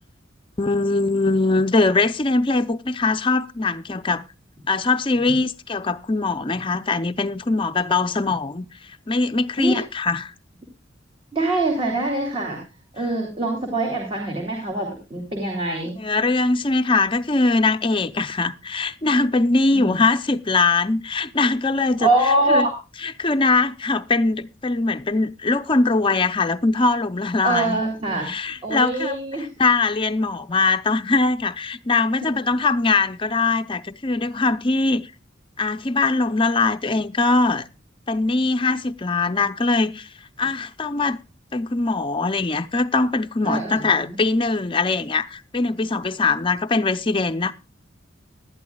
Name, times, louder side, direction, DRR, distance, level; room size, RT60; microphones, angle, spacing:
voice 1, 0.6-4.3 4.7-8.7 9.1-10.3 16.0-22.1 22.5-22.7 23.0-27.8 28.2-35.1 35.6-37.7 38.1-40.1 40.4-41.2 41.5-47.5, left 3 dB, 25° left, 0.6 m, -21 dB
voice 2, 11.3-12.6 12.9-16.0 19.7-20.0 22.0-22.7 27.4-28.3 28.6-29.5 32.2-32.3 43.4-44.2, right 2 dB, 30° right, 2.7 m, -24 dB
19.5 x 12.0 x 2.3 m
head